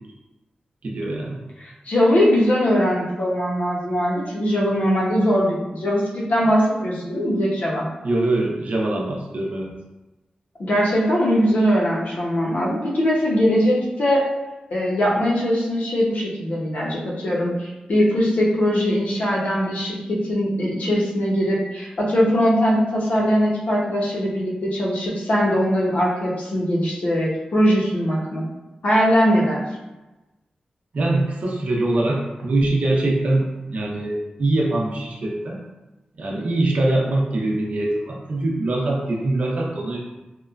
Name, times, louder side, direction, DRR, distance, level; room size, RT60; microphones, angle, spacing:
voice 1, 0.8-1.4 8.0-9.7 30.9-35.6 36.2-40.0, right 2 dB, 60° right, -2 dB, 0.5 m, -23 dB
voice 2, 1.6-7.9 10.6-14.2 14.7-28.4 28.8-29.6, equal, 65° left, -5 dB, 0.7 m, -21 dB
2.9 x 2.2 x 2.4 m, 1.1 s
wide cardioid pair, 110°, 3 cm